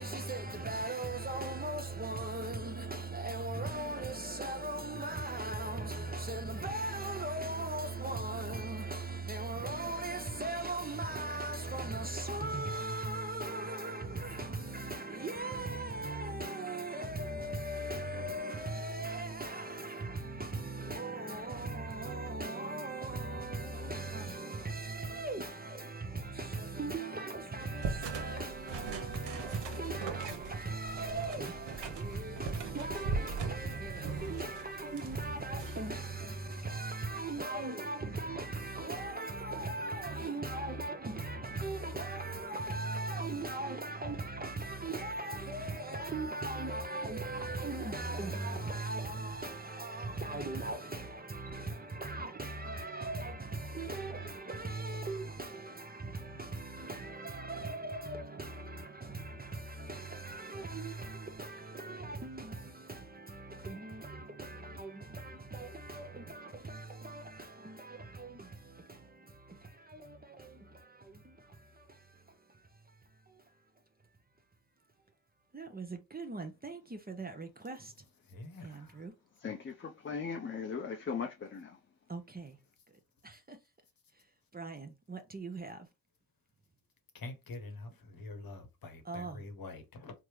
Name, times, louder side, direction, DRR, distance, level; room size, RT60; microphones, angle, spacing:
voice 1, 0.0-72.7 73.2-73.4 75.5-77.9 78.6-79.1 82.1-82.6 83.2-83.6 84.5-85.9 89.0-89.4, right 2 dB, 20° right, 0.6 m, -39 dB
sound 1, 27.8-36.0, right 4 dB, 65° right, 0.8 m, -40 dB
voice 2, 78.3-78.9 87.1-90.1, left 2 dB, 50° left, 1.0 m, -46 dB
voice 3, 79.4-81.8, left 5 dB, 25° left, 0.5 m, -39 dB
3.4 x 2.0 x 3.1 m
supercardioid pair, 55°, 45 cm